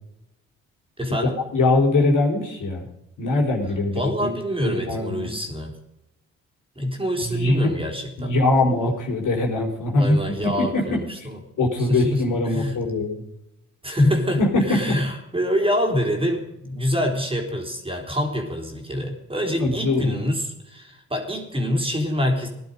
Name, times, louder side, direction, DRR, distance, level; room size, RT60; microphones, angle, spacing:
voice 1, 1.0-1.4 3.9-5.7 6.8-8.4 10.0-11.4 11.8-12.2 12.5-12.8 13.8-22.5, equal, 15° right, 2 dB, 3.7 m, -26 dB
voice 2, 1.5-2.9 3.2-4.4 4.6-5.3 7.2-7.8 8.2-10.2 10.6-11.3 11.6-13.2 14.4-14.9 19.5-20.2, left 2 dB, 55° left, 0 dB, 4.2 m, -22 dB
18.0 x 11.0 x 5.3 m, 0.87 s
hypercardioid pair, 45°, 37 cm